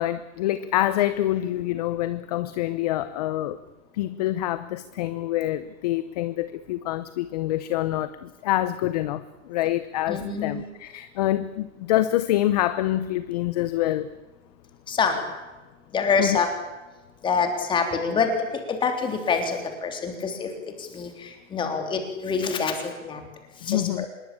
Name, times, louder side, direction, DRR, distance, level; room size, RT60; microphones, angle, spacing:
voice 1, 0.0-3.6 3.9-14.1 16.2-16.4 23.6-24.1, left 14 dB, 30° left, 14 dB, 0.8 m, -26 dB
voice 2, 10.1-10.6 14.9-15.2 15.9-16.5 17.2-20.5 20.8-23.2 23.6-24.1, left 5 dB, 10° left, 5 dB, 3.4 m, -26 dB
25.5 x 21.5 x 8.7 m, 1.1 s
hypercardioid pair, 160°, 40 cm